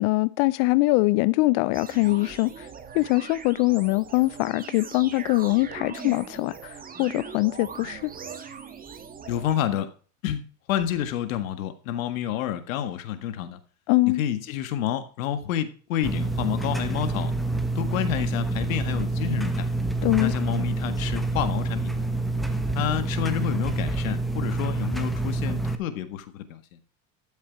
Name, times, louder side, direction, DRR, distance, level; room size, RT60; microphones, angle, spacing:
voice 1, 0.0-2.7 2.9-8.1 13.9-14.2 20.0-20.3, left 22 dB, 55° left, 0.5 m, -23 dB
sound 1, 1.7-9.6, right 6 dB, 20° right, 1.6 m, -40 dB
voice 2, 9.3-9.9 10.2-13.6 14.1-17.3 17.8-19.7 20.2-22.1 22.8-26.8, left 10 dB, 90° left, 1.8 m, -29 dB
sound 2, 16.0-25.8, right 2 dB, ahead, 1.1 m, -27 dB
13.0 x 7.5 x 4.7 m
supercardioid pair, 130°, 39 cm